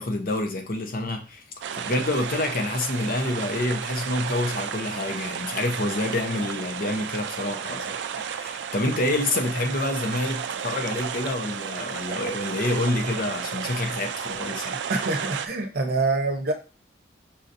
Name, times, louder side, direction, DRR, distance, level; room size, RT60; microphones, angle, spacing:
voice 1, 0.0-1.4 1.7-14.8, left 2 dB, 55° left, 4 dB, 0.7 m, -27 dB
sound 1, 1.6-15.5, right 7 dB, 80° right, 0.3 m, -33 dB
voice 2, 14.9-16.5, right 3 dB, 60° right, 4 dB, 0.7 m, -25 dB
5.6 x 2.8 x 2.6 m, 0.33 s
head